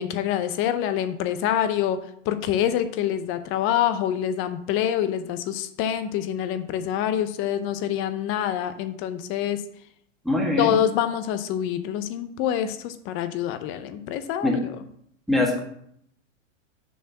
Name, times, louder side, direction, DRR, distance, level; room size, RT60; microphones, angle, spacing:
voice 1, 0.0-9.6 10.6-14.6, left 10 dB, 35° left, 11 dB, 0.7 m, -26 dB
voice 2, 10.2-10.8 14.4-14.6 15.3-15.6, left 2 dB, ahead, -1 dB, 1.4 m, -22 dB
6.7 x 4.2 x 6.4 m, 0.70 s
hypercardioid pair, 135°, 39 cm